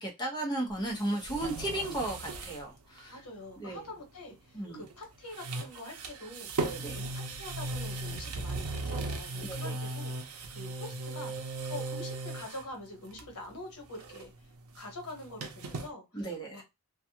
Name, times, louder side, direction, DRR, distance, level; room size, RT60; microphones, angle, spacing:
voice 1, 0.0-3.2 3.6-3.8 4.5-4.8 6.6-7.0 9.5-9.8 16.1-16.6, right 1 dB, 20° left, -1 dB, 0.9 m, -35 dB
sound 1, 0.7-2.7 3.0-3.1 4.8-5.0 5.3-12.7 13.1-13.5 13.8-15.9, right 2 dB, 75° right, 0.6 m, -37 dB
voice 2, 3.1-14.3 14.7-16.6, left 2 dB, 90° left, 3 dB, 1.1 m, -45 dB
2.4 x 2.4 x 2.7 m, 0.22 s
head